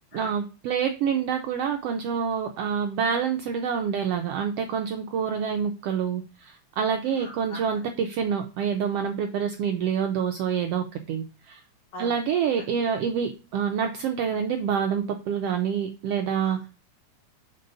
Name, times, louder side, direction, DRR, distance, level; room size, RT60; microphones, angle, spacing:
voice 1, 0.1-11.6 12.0-16.6, right 7 dB, 80° right, 5 dB, 1.4 m, -27 dB
voice 2, 7.0-7.6 11.9-12.2 16.3-16.7, right 1 dB, 70° left, 1 dB, 3.2 m, -42 dB
6.6 x 3.7 x 3.9 m, 0.32 s
omnidirectional pair, 3.4 m